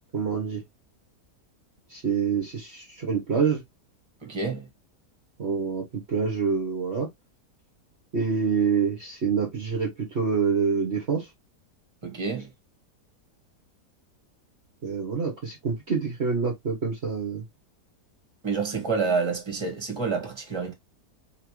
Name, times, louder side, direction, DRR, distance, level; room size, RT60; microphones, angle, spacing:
voice 1, 0.1-0.6 1.9-3.6 5.4-7.1 8.1-11.3 14.8-17.4, right 5 dB, 40° right, 1.4 m, -26 dB
voice 2, 4.2-4.7 12.0-12.5 18.4-20.7, right 4 dB, 15° right, 1.7 m, -28 dB
4.5 x 3.8 x 3.1 m
omnidirectional pair, 1.8 m